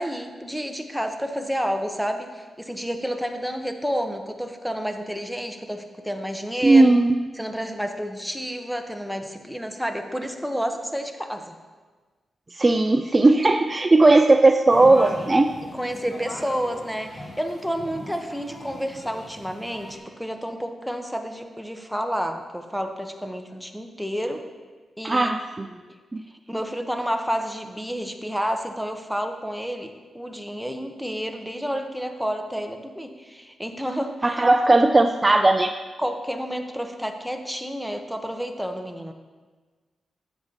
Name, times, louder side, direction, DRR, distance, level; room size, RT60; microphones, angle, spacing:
voice 1, 0.0-6.9 7.3-11.5 15.7-24.4 25.0-25.3 25.7-26.0 26.5-34.5 34.9-35.1 36.0-39.1, equal, ahead, 5 dB, 1.0 m, -30 dB
voice 2, 6.6-7.2 12.5-15.5 25.0-25.7 26.1-26.2 34.2-35.7, right 2 dB, 30° right, 7 dB, 0.4 m, -17 dB
sound 1, 14.7-20.0, left 1 dB, 35° left, 2.3 m, -39 dB
12.5 x 8.0 x 2.9 m, 1.4 s
cardioid pair, 55°, 0 cm